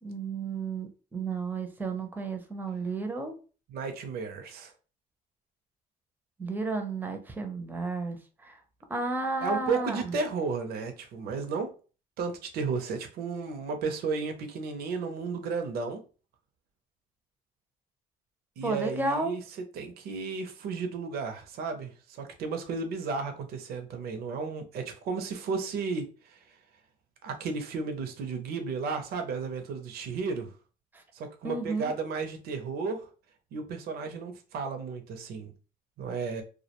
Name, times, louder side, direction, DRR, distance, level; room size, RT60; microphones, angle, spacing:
voice 1, 0.0-3.3 6.4-8.6 8.9-10.2 18.6-19.3 30.9-31.0 31.4-31.9, right 3 dB, 10° right, 0.5 m, -32 dB
voice 2, 3.7-4.7 9.4-11.7 12.2-16.0 18.6-19.4 19.7-26.4 27.2-30.5 31.1-33.1 33.5-35.5 36.0-36.4, right 4 dB, 65° right, 0.5 m, -33 dB
2.3 x 2.1 x 2.8 m
cardioid pair, 110°, 17 cm